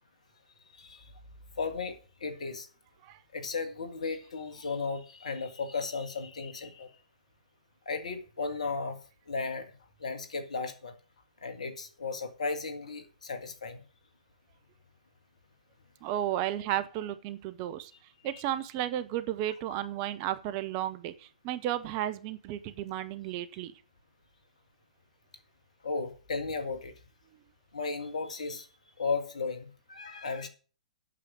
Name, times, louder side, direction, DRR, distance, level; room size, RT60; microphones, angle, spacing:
voice 1, 0.8-1.1 1.6-2.7 3.3-6.9 7.9-9.0 9.3-9.7 10.0-10.9 11.4-13.8 18.3-18.4 19.7-19.9 25.8-26.9 27.7-28.7 29.0-30.5, left 4 dB, 70° left, 8 dB, 1.9 m, -35 dB
voice 2, 16.0-17.9 18.2-21.1 21.4-23.7, right 12 dB, 35° right, 13 dB, 0.9 m, -33 dB
8.6 x 6.8 x 7.5 m, 0.38 s
figure-of-eight pair, 120°, 4 cm